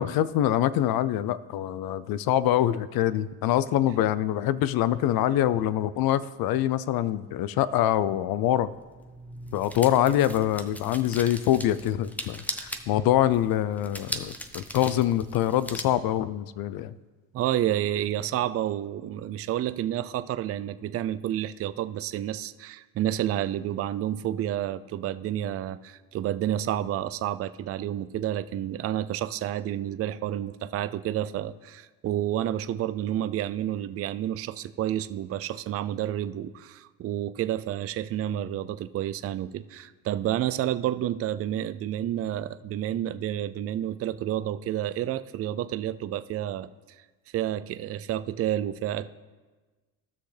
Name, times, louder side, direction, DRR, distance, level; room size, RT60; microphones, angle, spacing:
voice 1, 0.0-8.7 9.5-16.9, left 12 dB, 55° left, 16 dB, 0.5 m, -25 dB
sound 1, 8.3-15.8, equal, 5° left, 0.7 m, -40 dB
voice 2, 17.3-46.7 47.3-49.1, right 12 dB, 35° right, 13 dB, 0.4 m, -30 dB
16.0 x 6.3 x 3.3 m, 1.3 s
supercardioid pair, 80°, 44 cm